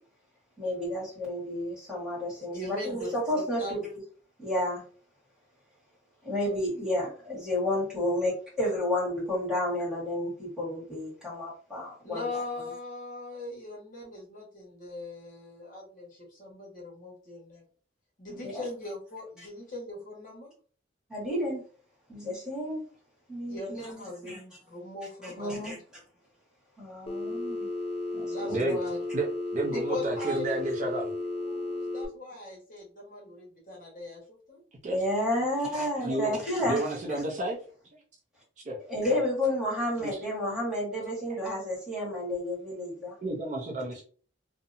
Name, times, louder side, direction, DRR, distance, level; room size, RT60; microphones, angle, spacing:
voice 1, 0.6-3.8 4.4-4.8 6.2-12.4 18.3-18.6 21.1-21.6 22.1-22.8 23.3-24.4 25.2-25.8 26.8-27.7 28.1-28.6 34.9-36.8 38.9-43.1, left 1 dB, 5° right, -7 dB, 1.5 m, -31 dB
voice 2, 2.5-3.7 12.0-17.6 18.2-20.5 22.6-22.7 23.5-25.8 28.2-29.0 29.7-34.6, left 2 dB, 45° left, -3 dB, 1.1 m, -40 dB
Telephone, 27.1-32.1, left 2 dB, 30° left, 0.4 m, -34 dB
voice 3, 29.5-31.1 34.8-35.0 36.0-36.3 36.7-37.6 38.7-38.8 39.1-39.2 40.0-40.2 43.2-44.0, right 2 dB, 40° right, -1 dB, 0.5 m, -31 dB
2.7 x 2.1 x 2.5 m, 0.42 s
head